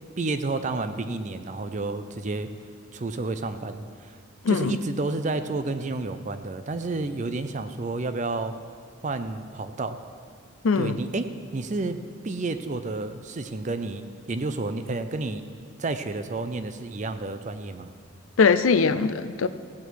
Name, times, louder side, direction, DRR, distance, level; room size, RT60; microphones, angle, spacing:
voice 1, 0.2-2.5 2.9-4.1 4.5-8.5 9.0-10.0 10.8-15.5 15.8-17.9, right 3 dB, 35° right, 0.5 m, -30 dB
voice 2, 4.4-4.8 10.6-11.0 18.4-19.5, left 5 dB, 85° left, 0.5 m, -21 dB
16.0 x 8.5 x 4.7 m
head